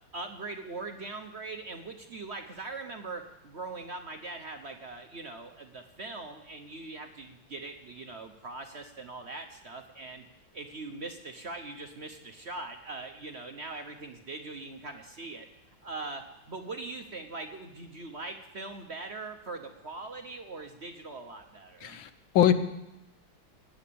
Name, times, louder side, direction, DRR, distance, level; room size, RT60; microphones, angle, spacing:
voice 1, 0.1-10.2 10.5-15.5 15.8-22.0, right 3 dB, 45° right, 5 dB, 1.0 m, -41 dB
voice 2, 21.8-22.5, left 11 dB, 80° left, 11 dB, 1.7 m, -23 dB
17.5 x 9.6 x 7.0 m, 0.93 s
omnidirectional pair, 2.1 m